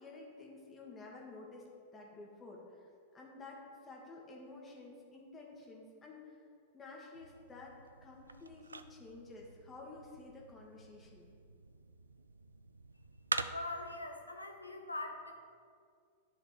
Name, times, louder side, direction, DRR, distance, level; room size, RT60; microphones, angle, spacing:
voice 1, 0.0-2.9 3.1-6.3 6.7-11.3, left 3 dB, 20° left, -2 dB, 1.7 m, -52 dB
sound 1, 7.1-14.0, right 3 dB, 80° right, 0.3 m, -45 dB
voice 2, 13.5-15.3, left 2 dB, 85° left, 4 dB, 0.8 m, -42 dB
9.8 x 4.3 x 6.3 m, 2.2 s
figure-of-eight pair, 95°, 0 cm